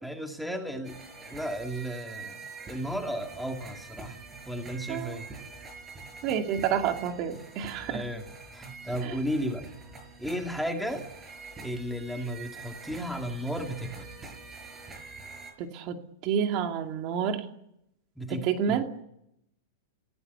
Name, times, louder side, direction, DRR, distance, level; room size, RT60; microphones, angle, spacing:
voice 1, 0.0-4.2 4.5-5.3 7.9-8.3 8.5-9.7 10.2-11.0 11.6-14.3 18.2-18.8, equal, ahead, 3 dB, 2.3 m, -34 dB
sound 1, 0.8-15.5, right 4 dB, 15° right, 5.8 m, -45 dB
voice 2, 4.9-5.2 6.2-8.0 15.6-17.4 18.4-18.9, right 8 dB, 40° right, 5 dB, 2.4 m, -29 dB
30.0 x 17.5 x 6.9 m, 0.80 s
supercardioid pair, 150°, 0 cm